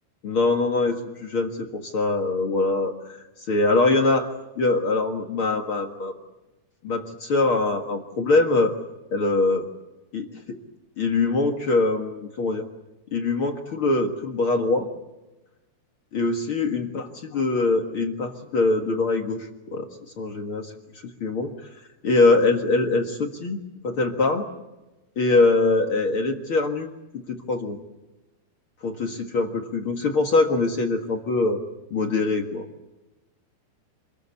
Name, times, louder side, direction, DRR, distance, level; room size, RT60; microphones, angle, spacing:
voice 1, 0.2-2.9 3.5-4.3 4.6-6.1 6.8-8.7 9.1-9.7 10.1-10.6 11.0-12.7 13.1-14.9 16.1-17.0 17.3-19.9 20.2-20.7 21.2-21.5 22.0-23.6 23.8-24.4 25.1-26.9 27.1-27.8 28.8-31.6 31.9-32.6, left 3 dB, 50° left, 4 dB, 1.6 m, -23 dB
28.0 x 21.5 x 8.3 m, 1.0 s
omnidirectional pair, 4.9 m